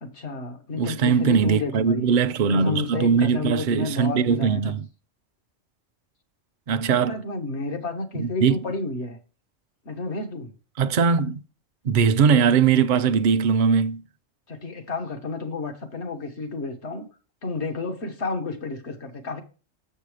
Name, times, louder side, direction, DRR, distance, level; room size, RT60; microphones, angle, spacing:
voice 1, 0.0-2.1 2.5-4.7 6.8-9.2 9.8-10.5 14.5-17.0 17.4-19.4, left 3 dB, 70° left, 1.5 m, -31 dB
voice 2, 0.7-4.9 6.7-7.2 8.2-8.6 10.8-11.4 11.8-14.0, right 6 dB, 55° right, 0.6 m, -20 dB
7.1 x 5.5 x 4.8 m
omnidirectional pair, 1.2 m